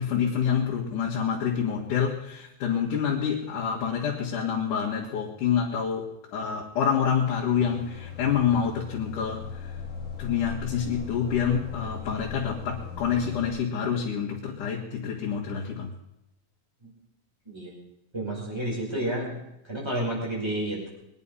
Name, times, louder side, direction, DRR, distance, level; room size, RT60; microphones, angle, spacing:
voice 1, 0.0-9.8 10.2-15.9, left 7 dB, 85° left, -3 dB, 3.4 m, -27 dB
sound 1, 7.5-13.5, left 7 dB, 25° left, 3.5 m, -38 dB
voice 2, 18.1-19.4 19.7-20.9, right 1 dB, 10° right, -3 dB, 5.5 m, -30 dB
23.0 x 10.0 x 5.6 m, 0.84 s
omnidirectional pair, 3.5 m